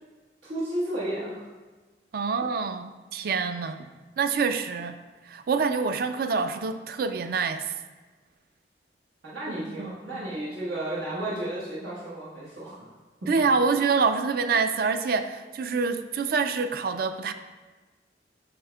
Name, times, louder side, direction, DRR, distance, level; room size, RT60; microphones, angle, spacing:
voice 1, 0.4-1.5 9.2-12.9 13.7-13.8, right 1 dB, 90° right, -8 dB, 1.3 m, -33 dB
voice 2, 2.1-3.9 4.2-5.0 5.3-7.8 9.8-10.3 13.3-17.3, right 5 dB, 55° right, 9 dB, 0.4 m, -26 dB
7.8 x 5.5 x 2.2 m, 1.3 s
head